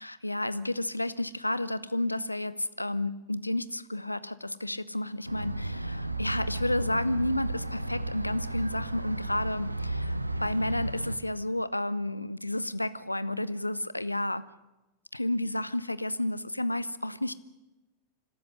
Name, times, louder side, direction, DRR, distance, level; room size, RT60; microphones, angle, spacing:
voice 1, 0.0-10.1 10.4-14.5 15.1-17.3, left 1 dB, 85° left, 17 dB, 0.8 m, -31 dB
sound 1, 5.2-11.2, right 2 dB, 85° right, 0.9 m, -33 dB
26.0 x 13.0 x 10.0 m, 1.0 s
figure-of-eight pair, 90°, 0 cm